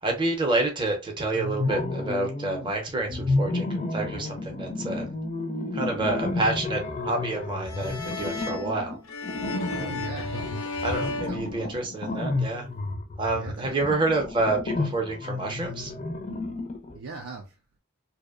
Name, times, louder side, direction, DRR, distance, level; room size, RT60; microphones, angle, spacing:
voice 1, 0.0-5.1 5.7-9.0 9.7-10.0 10.8-12.7 13.2-15.9, right 2 dB, 25° right, 0.6 m, -28 dB
sound 1, 1.3-2.7 3.1-17.0, left 2 dB, 30° left, 0.4 m, -31 dB
sound 2, 7.6-12.2, left 3 dB, 85° left, 0.6 m, -35 dB
voice 2, 9.7-11.7 13.3-13.9 16.9-17.5, right 4 dB, 85° right, 0.4 m, -41 dB
2.6 x 2.0 x 2.3 m
head